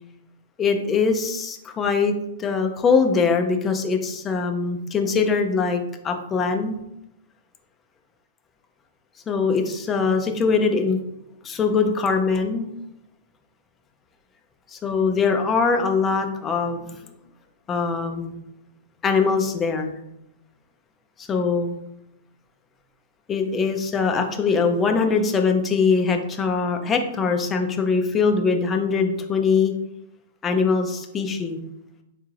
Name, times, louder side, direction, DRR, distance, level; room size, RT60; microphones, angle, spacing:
voice 1, 0.6-6.8 9.3-11.0 11.4-12.7 14.7-16.8 17.7-18.3 19.0-19.9 21.3-21.8 23.3-29.7 30.4-31.6, left 5 dB, 15° left, 5 dB, 0.4 m, -22 dB
3.8 x 2.3 x 3.1 m, 0.84 s
hypercardioid pair, 150°, 0 cm